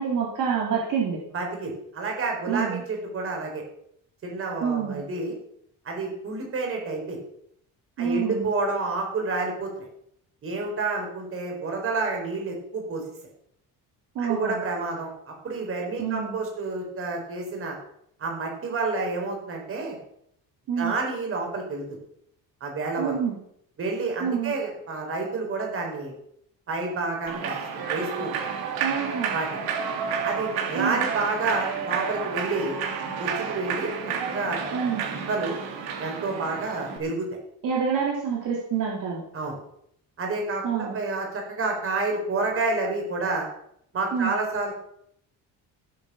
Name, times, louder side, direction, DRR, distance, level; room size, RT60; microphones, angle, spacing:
voice 1, 0.0-1.2 2.5-2.8 4.6-5.0 8.0-8.5 14.1-14.6 16.0-16.4 20.7-21.0 23.0-23.4 24.2-24.6 28.8-29.3 30.7-31.0 34.7-35.0 37.6-39.2 40.6-41.0 44.1-44.4, right 7 dB, 60° right, -2 dB, 2.9 m, -27 dB
voice 2, 1.3-3.6 4.2-5.3 5.8-7.2 8.0-9.9 10.4-13.0 14.2-17.8 18.2-20.0 20.8-22.0 22.6-23.2 23.8-26.1 26.7-28.3 29.3-29.5 30.2-32.7 33.2-33.9 34.2-35.6 36.0-37.3 39.3-39.6 40.2-43.5 43.9-44.7, right 3 dB, 40° right, 1 dB, 4.7 m, -29 dB
Human voice / Clapping / Cheering, 27.3-37.0, right 6 dB, 85° right, 3.2 m, -31 dB
16.0 x 7.9 x 7.1 m, 0.72 s
cardioid pair, 180°, 35 cm